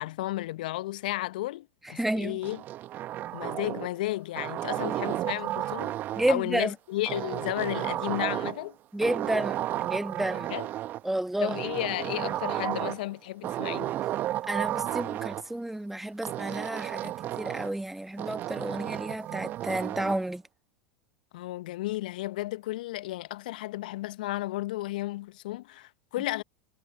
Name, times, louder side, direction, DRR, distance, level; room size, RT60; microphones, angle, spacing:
voice 1, 0.0-2.6 3.3-6.0 6.3-8.8 10.3-10.7 11.4-13.9 18.7-19.0 21.3-26.4, left 17 dB, 65° left, 1.1 m, -33 dB
voice 2, 2.0-2.4 6.2-6.7 8.9-10.5 11.0-11.6 14.5-20.4, right 1 dB, 5° right, 1.7 m, -31 dB
sound 1, 2.4-4.0 4.3-6.4 7.1-8.7 9.0-11.0 11.5-13.1 13.4-15.4 16.2-17.8 18.2-20.2, right 13 dB, 40° right, 1.6 m, -33 dB
figure-of-eight pair, 85°, 5 cm